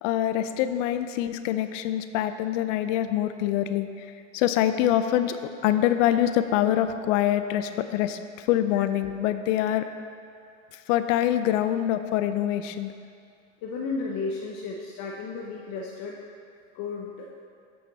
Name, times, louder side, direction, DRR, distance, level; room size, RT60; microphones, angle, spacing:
voice 1, 0.0-4.0 4.3-5.4 5.6-9.9 10.9-12.9, left 12 dB, 70° left, 10 dB, 0.5 m, -25 dB
voice 2, 13.6-16.2 16.7-17.5, left 4 dB, 55° left, -2 dB, 0.9 m, -33 dB
7.9 x 6.5 x 4.1 m, 2.3 s
hypercardioid pair, 90°, 39 cm